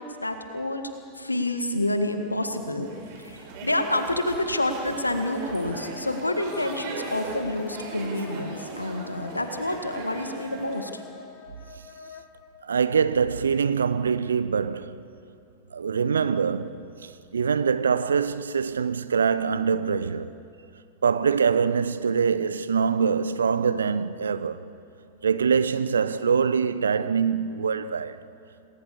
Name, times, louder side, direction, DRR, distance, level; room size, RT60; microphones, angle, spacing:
voice 1, 0.0-2.9 3.2-11.0, left 1 dB, 85° left, 1.9 m, -28 dB
sound 1, 2.8-10.8, right 3 dB, 45° right, 5.3 m, -39 dB
Wind instrument woodwind instrument, 4.3-12.5, left 6 dB, 40° left, 2.0 m, -46 dB
voice 2, 12.6-15.0 15.7-20.3 21.0-24.6 25.2-28.2, right 6 dB, 70° right, 0.8 m, -24 dB
27.5 x 20.0 x 7.1 m
figure-of-eight pair, 90°, 0 cm